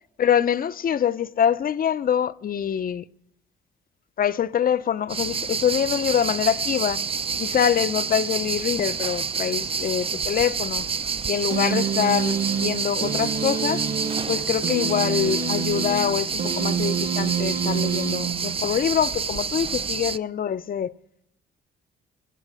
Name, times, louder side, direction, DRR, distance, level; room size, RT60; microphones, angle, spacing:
voice 1, 0.2-3.0 4.2-7.0 7.4-10.9 11.3-13.9 14.3-20.9, left 9 dB, 45° left, 0.7 m, -24 dB
sound 1, 5.1-20.2, right 5 dB, 30° right, 0.6 m, -28 dB
sound 2, 11.5-18.9, right 6 dB, 45° right, 1.4 m, -28 dB
24.5 x 9.0 x 6.4 m
cardioid pair, 90°, 20 cm